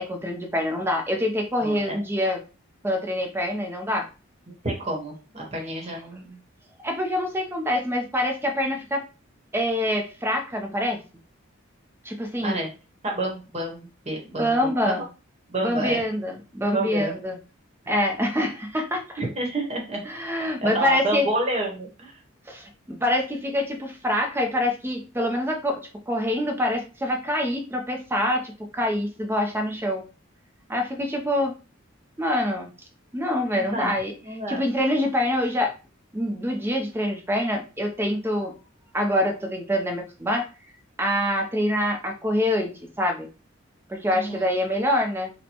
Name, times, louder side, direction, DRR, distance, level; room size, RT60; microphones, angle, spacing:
voice 1, 0.0-2.4 2.8-4.1 5.9-6.0 6.8-9.0 9.5-11.0 12.0-12.6 14.3-15.0 15.6-17.3 17.9-19.2 20.1-21.3 22.5-22.7 23.0-25.8 26.1-30.0 30.7-31.5 32.2-32.7 33.1-34.1 34.5-35.7 36.1-38.5 38.9-40.5 41.0-42.7 43.0-43.3 43.9-45.3, left 1 dB, 10° right, 3 dB, 0.5 m, -25 dB
voice 2, 1.6-2.0 4.6-6.4 12.4-12.7 13.1-14.9 15.5-16.0 16.7-17.1 19.2-20.0 20.6-22.1 33.5-33.9 34.3-34.6 44.1-44.5, right 1 dB, 30° right, 0 dB, 1.0 m, -29 dB
4.2 x 2.1 x 2.8 m, 0.33 s
head